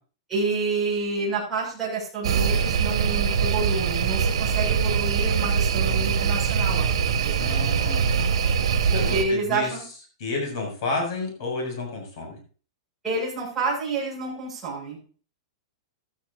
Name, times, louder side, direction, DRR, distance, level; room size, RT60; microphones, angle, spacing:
voice 1, 0.3-7.5 8.9-9.8 13.0-15.1, right 3 dB, 5° right, -9 dB, 6.5 m, -29 dB
sound 1, 2.2-9.2, right 6 dB, 80° right, 1.9 m, -23 dB
voice 2, 7.4-9.7 10.2-12.4, left 3 dB, 50° left, 2 dB, 6.8 m, -31 dB
15.5 x 13.0 x 2.7 m, 0.39 s
supercardioid pair, 175°, 3 cm